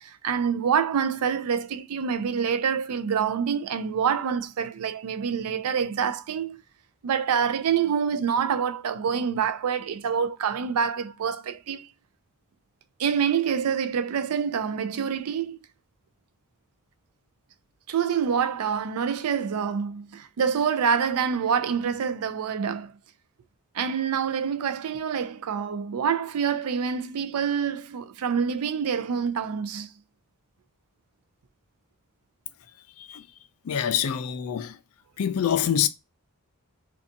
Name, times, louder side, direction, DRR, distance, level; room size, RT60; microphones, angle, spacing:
voice 1, 0.0-6.6 7.0-11.9 13.0-15.6 17.9-22.9 23.7-29.9, right 7 dB, 85° right, 0.4 m, -26 dB
voice 2, 33.6-34.8 35.2-35.9, left 9 dB, 70° left, 0.4 m, -25 dB
2.6 x 2.3 x 2.5 m
head